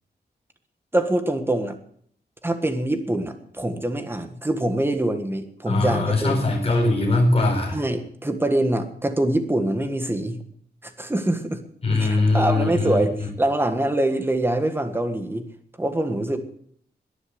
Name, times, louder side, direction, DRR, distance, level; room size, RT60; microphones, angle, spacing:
voice 1, 0.9-1.8 2.4-6.4 7.7-10.4 10.8-11.6 12.0-15.4 15.8-16.4, right 1 dB, 15° right, 7 dB, 1.6 m, -24 dB
voice 2, 5.7-7.8 11.8-13.1, left 2 dB, 35° left, 1 dB, 4.5 m, -21 dB
21.5 x 7.2 x 7.9 m, 0.63 s
wide cardioid pair, 170°, 17 cm